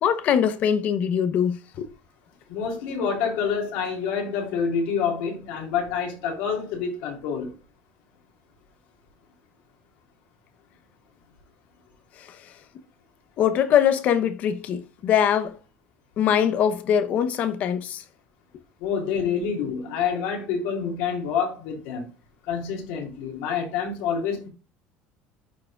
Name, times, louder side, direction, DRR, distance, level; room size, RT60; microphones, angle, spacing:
voice 1, 0.0-1.9 12.2-12.4 13.4-15.6 16.2-18.0, left 8 dB, 45° left, 0.8 m, -22 dB
voice 2, 2.5-7.5 18.8-22.1 22.5-24.5, left 6 dB, 80° left, 3.1 m, -27 dB
13.5 x 4.7 x 2.4 m
cardioid pair, 160°, 4 cm